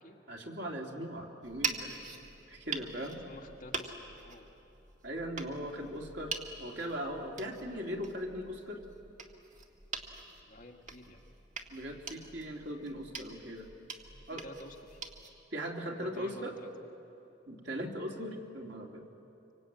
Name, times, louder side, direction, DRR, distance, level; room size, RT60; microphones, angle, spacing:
voice 1, 0.3-2.0 2.5-3.2 5.0-6.3 6.6-8.8 11.7-13.7 14.3-14.4 15.5-16.5 17.5-19.0, equal, 65° right, 0 dB, 3.0 m, -39 dB
sound 1, 1.4-15.3, right 4 dB, 40° right, 1.9 m, -44 dB
voice 2, 3.0-4.5 10.4-11.3 14.1-15.0 15.9-16.7 17.2-17.3, left 1 dB, 45° left, 1 dB, 2.0 m, -51 dB
25.5 x 24.5 x 9.0 m, 2.9 s
head